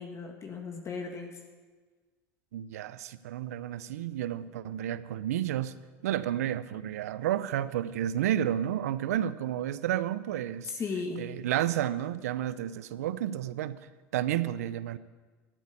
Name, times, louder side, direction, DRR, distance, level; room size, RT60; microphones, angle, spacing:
voice 1, 0.0-1.4 10.7-11.3, left 4 dB, 35° left, 3 dB, 1.8 m, -36 dB
voice 2, 2.5-5.7 6.0-10.7 11.2-13.8 14.1-15.0, right 11 dB, 85° right, 16 dB, 0.6 m, -31 dB
13.0 x 8.3 x 8.5 m, 1.3 s
hypercardioid pair, 85°, 8 cm